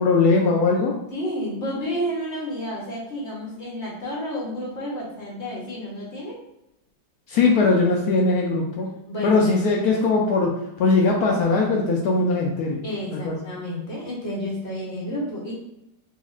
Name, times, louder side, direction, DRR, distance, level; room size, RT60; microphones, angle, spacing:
voice 1, 0.0-1.0 7.3-8.9 9.2-10.5 10.8-12.8 13.1-13.3, left 3 dB, 75° left, -1 dB, 0.9 m, -20 dB
voice 2, 1.1-6.4 9.1-9.6 12.8-15.5, equal, 50° left, -4 dB, 0.9 m, -30 dB
4.1 x 2.8 x 2.4 m, 0.85 s
omnidirectional pair, 2.0 m